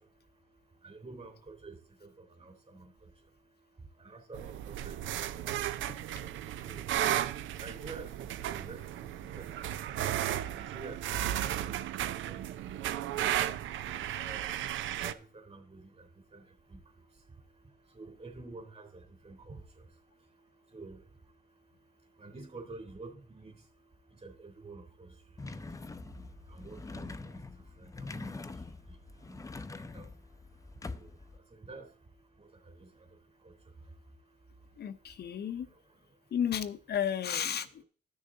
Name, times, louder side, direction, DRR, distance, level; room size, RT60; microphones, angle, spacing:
voice 1, 0.8-3.1 4.0-5.7 6.2-6.3 6.6-6.9 7.6-9.8 10.5-11.7 12.0-12.7 13.8-14.6 14.9-16.8 17.9-19.9 20.7-21.0 22.2-23.6 24.1-25.1 25.5-25.6 26.5-29.0 29.2-29.4 29.7-30.1 30.9-31.2 31.5-31.9 32.4-33.1 33.4-33.5, right 3 dB, 30° right, 3.4 m, -49 dB
sound 1, 4.3-15.1, right 11 dB, 75° right, 0.6 m, -34 dB
sound 2, 25.4-31.4, left 3 dB, 15° left, 0.6 m, -44 dB
voice 2, 34.8-35.7 36.3-37.8, left 9 dB, 55° left, 0.7 m, -33 dB
13.0 x 6.4 x 3.8 m
cardioid pair, 90°, 20 cm